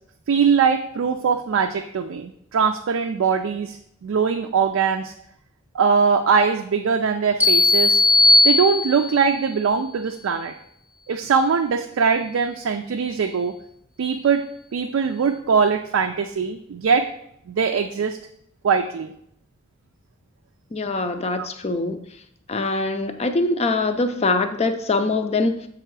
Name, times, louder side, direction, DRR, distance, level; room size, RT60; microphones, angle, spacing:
voice 1, 0.3-5.1 5.7-8.0 8.4-10.5 11.1-13.5 14.0-14.4 14.7-17.1 17.5-18.2 18.6-19.1 21.4-21.5, right 6 dB, 75° right, 5 dB, 0.4 m, -21 dB
sound 1, 7.4-9.3, left 2 dB, 10° right, 0.7 m, -17 dB
voice 2, 20.7-22.0 22.5-25.6, left 3 dB, 30° left, 8 dB, 0.5 m, -23 dB
6.7 x 3.6 x 4.6 m, 0.71 s
head